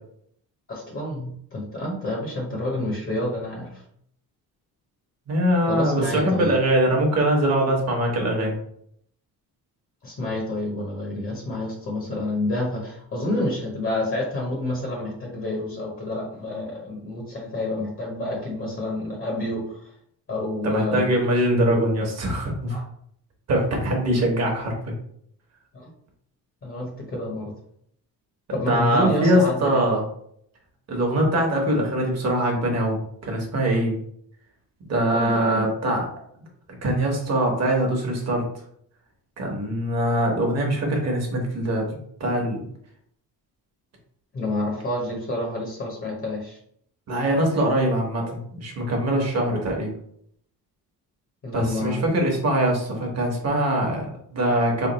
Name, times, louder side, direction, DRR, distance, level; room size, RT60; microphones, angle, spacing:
voice 1, 0.7-3.8 5.7-6.5 10.0-19.9 20.3-21.1 22.7-22.8 25.7-25.9 26.6-27.5 28.5-29.9 35.1-35.7 44.3-46.6 51.4-52.0, left 1 dB, 35° left, -1 dB, 0.9 m, -28 dB
voice 2, 5.3-8.6 20.6-22.8 23.5-24.9 28.7-30.0 30.9-34.0 34.8-36.0 36.8-38.4 39.4-42.7 47.1-49.9 51.5-54.9, right 1 dB, 45° right, 1 dB, 1.0 m, -22 dB
3.4 x 2.3 x 4.0 m, 0.67 s
cardioid pair, 165°, 37 cm